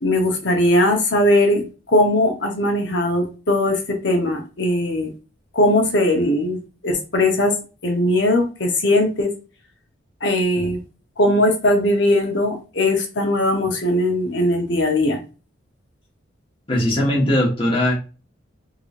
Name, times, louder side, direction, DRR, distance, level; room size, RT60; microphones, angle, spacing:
voice 1, 0.0-5.1 5.5-6.6 6.8-7.5 7.8-9.3 10.2-10.8 11.2-15.2, left 1 dB, 65° left, 3 dB, 1.0 m, -19 dB
voice 2, 16.7-17.9, left 1 dB, 25° left, -3 dB, 1.3 m, -19 dB
3.8 x 3.2 x 2.5 m, 0.33 s
head